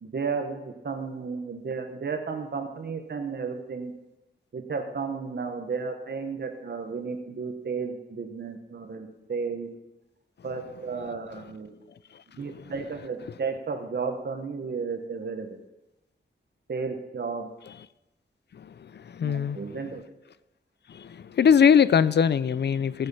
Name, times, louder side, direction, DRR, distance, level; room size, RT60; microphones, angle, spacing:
voice 1, 0.0-3.9 4.5-9.7 10.4-11.7 12.4-15.6 16.7-17.5 19.2-20.0, right 5 dB, 55° right, 5 dB, 1.3 m, -33 dB
voice 2, 19.1-19.6 20.9-23.1, left 7 dB, 55° left, 18 dB, 0.5 m, -21 dB
15.0 x 7.8 x 5.5 m, 0.97 s
wide cardioid pair, 140°, 20 cm